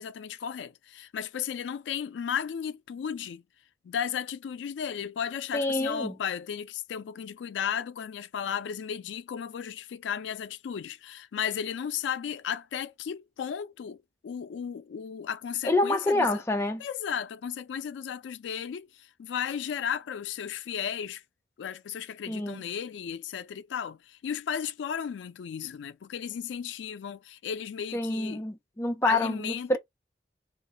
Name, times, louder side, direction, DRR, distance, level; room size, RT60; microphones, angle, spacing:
voice 1, 0.0-3.4 3.8-16.4 16.8-21.2 21.6-28.4 29.0-29.8, left 8 dB, 85° left, 0.3 m, -34 dB
voice 2, 5.5-6.1 15.6-16.8 22.3-22.6 27.9-29.8, left 2 dB, 15° left, 0.4 m, -27 dB
2.4 x 2.2 x 3.8 m
head